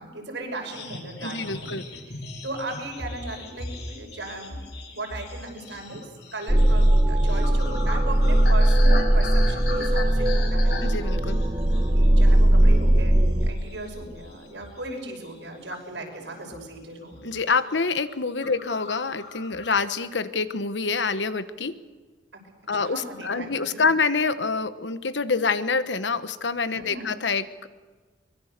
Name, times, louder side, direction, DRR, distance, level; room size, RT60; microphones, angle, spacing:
voice 1, 0.0-1.7 2.1-4.6 4.9-10.8 11.9-17.2 18.5-18.6 22.3-23.9 26.8-27.1, right 2 dB, 85° right, 2 dB, 5.8 m, -37 dB
sound 1, 0.7-12.4 12.7-13.0 13.4-14.9 15.2-16.0 16.5-16.8 17.0-17.4 17.7-17.8 18.1-18.2 18.4-19.8, left 3 dB, 65° left, 4.6 m, -39 dB
voice 2, 1.2-1.8 10.8-11.4 17.2-21.7 22.7-27.7, left 4 dB, 85° left, 12 dB, 1.2 m, -26 dB
sound 2, 6.5-13.5, right 1 dB, 25° right, 1.3 m, -19 dB
23.5 x 22.0 x 6.7 m, 1.4 s
head